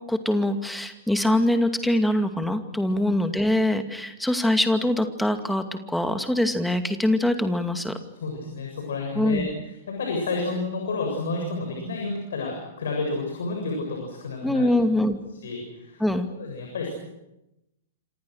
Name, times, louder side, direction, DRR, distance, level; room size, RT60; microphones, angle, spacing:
voice 1, 0.1-8.0 9.1-9.5 14.4-15.2 16.0-16.3, left 1 dB, ahead, 8 dB, 2.4 m, -23 dB
voice 2, 8.2-9.5 9.9-14.7 15.4-16.0 16.4-16.9, left 3 dB, 65° left, 1 dB, 7.5 m, -30 dB
27.5 x 27.0 x 6.5 m, 0.92 s
figure-of-eight pair, 105°, 0 cm